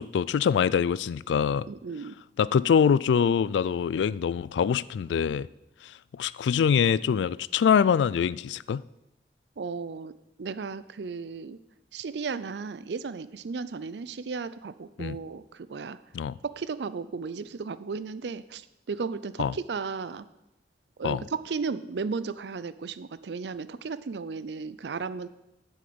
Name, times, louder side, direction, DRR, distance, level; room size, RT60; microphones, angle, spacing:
voice 1, 0.0-1.7 2.4-5.5 6.1-8.8 15.0-15.2 16.1-16.4 19.4-19.5 21.0-21.2, left 7 dB, 85° left, 0.3 m, -24 dB
voice 2, 1.7-2.1 9.6-10.1 10.4-11.6 11.9-16.0 16.4-20.3 21.0-25.3, right 4 dB, 70° right, 0.5 m, -35 dB
7.7 x 6.5 x 7.7 m
head